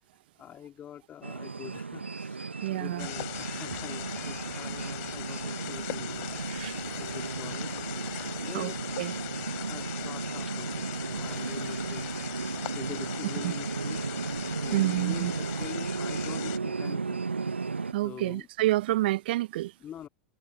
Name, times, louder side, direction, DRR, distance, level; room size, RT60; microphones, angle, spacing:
voice 1, 0.4-6.6 6.9-8.8 9.0-12.1 12.5-14.1 14.6-17.3 18.0-18.5 19.8-20.1, left 10 dB, 30° left, 2.7 m, -45 dB
sound 1, 1.2-17.9, right 4 dB, 85° right, 0.9 m, -35 dB
voice 2, 2.6-3.1 6.5-7.0 8.1-9.1 13.4-13.5 14.7-15.3 17.9-19.7, right 16 dB, 60° right, 0.6 m, -29 dB
sound 2, 3.0-16.6, left 38 dB, 50° left, 3.8 m, -40 dB
Traffic noise roadway noise, 3.3-15.7, right 10 dB, 30° right, 4.6 m, -53 dB
figure-of-eight pair, 90°, 6 cm